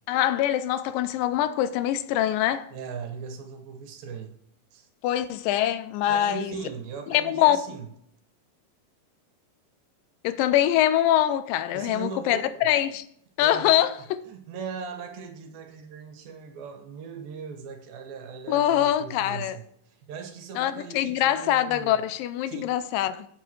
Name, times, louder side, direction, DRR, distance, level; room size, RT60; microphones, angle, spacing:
voice 1, 0.1-2.7 5.0-6.5 7.1-7.6 10.2-13.0 13.4-13.9 18.5-19.6 20.6-23.3, left 12 dB, 80° left, 2.1 m, -24 dB
voice 2, 2.7-4.3 4.7-4.9 6.1-7.9 11.7-12.6 13.4-13.9 14.3-22.0 22.5-22.7, right 6 dB, 80° right, 3.0 m, -39 dB
14.0 x 8.1 x 3.1 m
omnidirectional pair, 4.1 m